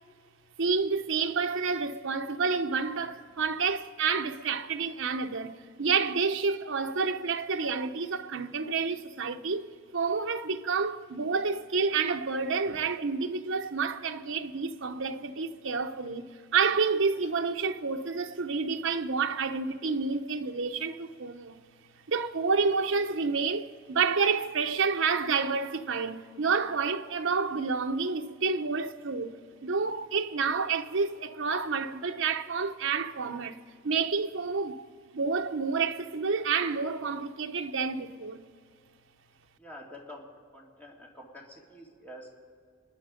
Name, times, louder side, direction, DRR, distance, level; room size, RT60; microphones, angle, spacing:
voice 1, 0.6-9.7 9.9-21.6 22.1-29.3 29.6-33.6 33.8-34.8 35.1-38.4, right 5 dB, 65° right, 0.8 m, -29 dB
voice 2, 39.6-40.3 40.5-42.3, left 1 dB, 10° left, 2.7 m, -47 dB
28.5 x 9.7 x 5.1 m
head